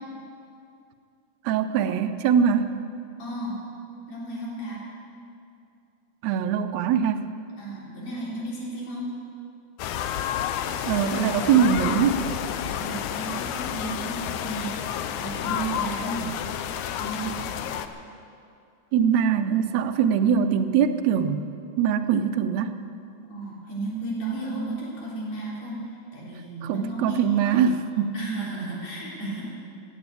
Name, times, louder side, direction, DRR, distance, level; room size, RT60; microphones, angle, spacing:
voice 1, 1.4-2.7 6.2-7.3 10.9-12.3 18.9-21.5 21.8-22.8 26.6-28.2, right 7 dB, 75° right, 8 dB, 2.0 m, -22 dB
voice 2, 3.2-3.6 4.1-4.8 7.6-9.1 12.8-14.7 15.1-16.3 17.0-17.4 23.3-27.6 28.1-29.5, right 2 dB, 60° left, -5 dB, 4.7 m, -33 dB
sound 1, 9.8-17.9, left 9 dB, 85° left, 2.1 m, -30 dB
16.0 x 9.7 x 8.3 m, 2.5 s
omnidirectional pair, 3.3 m